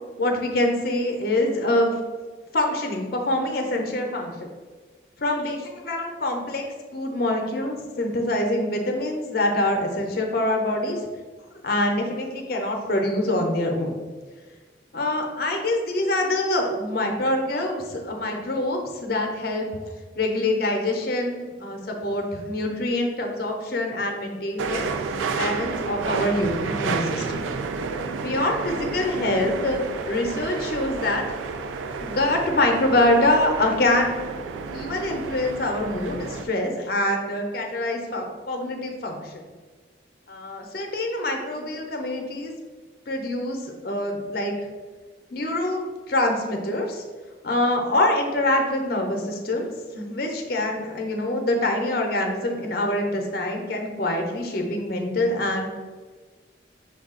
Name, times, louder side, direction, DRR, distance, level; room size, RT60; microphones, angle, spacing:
voice 1, 0.2-2.0 2.5-4.5 5.2-6.6 6.9-11.0 11.6-13.9 14.9-19.7 20.2-24.9 25.3-27.4 28.2-31.3 32.0-34.2 34.7-39.4 40.3-42.5 43.1-44.5 45.3-47.0 47.4-55.8, left 1 dB, 50° left, 3 dB, 0.6 m, -25 dB
sound 1, 24.6-36.5, right 4 dB, 90° right, 0.3 m, -31 dB
5.3 x 2.3 x 3.6 m, 1.4 s
head